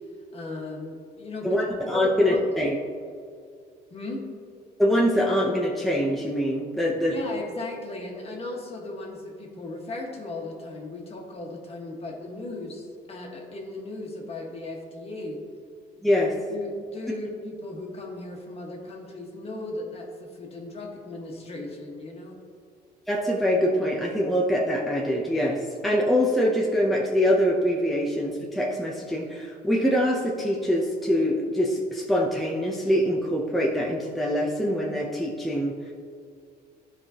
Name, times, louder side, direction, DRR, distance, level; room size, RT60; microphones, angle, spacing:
voice 1, 0.3-1.6 1.9-2.4 3.9-4.2 7.1-15.4 16.0-16.1 16.5-22.4, left 2 dB, 35° left, 0 dB, 1.5 m, -36 dB
voice 2, 1.4-2.8 4.8-7.1 16.0-16.4 23.1-35.9, equal, ahead, -3 dB, 0.7 m, -24 dB
12.0 x 4.9 x 2.9 m, 2.2 s
cardioid pair, 110°, 17 cm